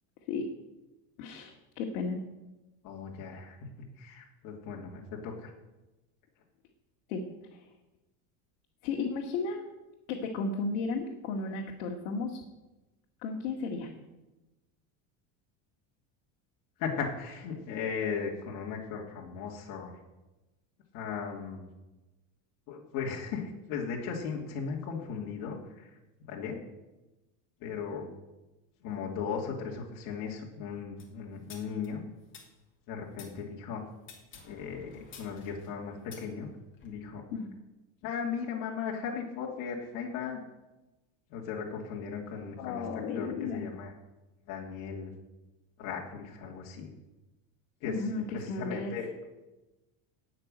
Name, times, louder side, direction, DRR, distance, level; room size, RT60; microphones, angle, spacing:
voice 1, 1.2-2.2 7.1-7.2 7.5-7.6 8.8-9.6 10.1-12.4 13.2-13.9 37.3-37.6 42.6-43.7 47.8-48.2 48.5-49.0, left 4 dB, 75° left, 0 dB, 2.1 m, -34 dB
voice 2, 2.8-5.5 16.8-20.0 20.9-21.7 22.7-25.9 26.3-26.6 27.6-28.1 28.8-32.0 32.9-33.8 34.4-36.5 36.8-37.2 38.0-40.4 41.3-42.9 43.1-43.9 44.5-45.1 45.8-46.9 47.8-49.1, left 6 dB, 50° left, -2 dB, 2.7 m, -37 dB
sound 1, 31.0-33.3 34.0-36.9, left 6 dB, 30° left, 2.8 m, -52 dB
17.5 x 6.1 x 8.9 m, 1.1 s
cardioid pair, 175°, 40 cm